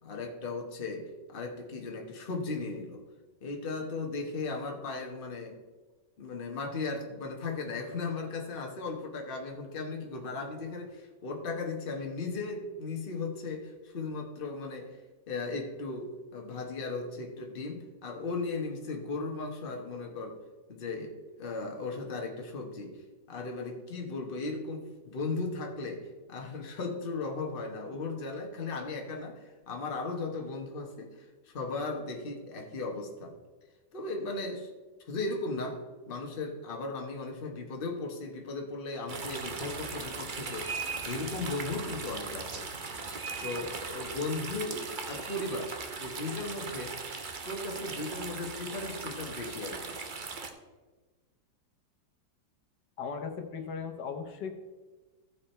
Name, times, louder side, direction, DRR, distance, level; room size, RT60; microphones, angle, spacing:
voice 1, 0.0-3.0 3.4-5.6 6.2-15.0 15.3-20.4 20.7-23.0 23.3-33.3 33.9-34.7 35.0-42.6 43.4-47.0 47.4-50.0, left 3 dB, 35° left, 2 dB, 1.3 m, -37 dB
sound 1, 39.1-50.5, right 4 dB, 45° right, 0.6 m, -39 dB
voice 2, 53.0-54.5, left 6 dB, 75° left, 4 dB, 1.5 m, -37 dB
15.0 x 5.0 x 4.3 m, 1.3 s
omnidirectional pair, 1.9 m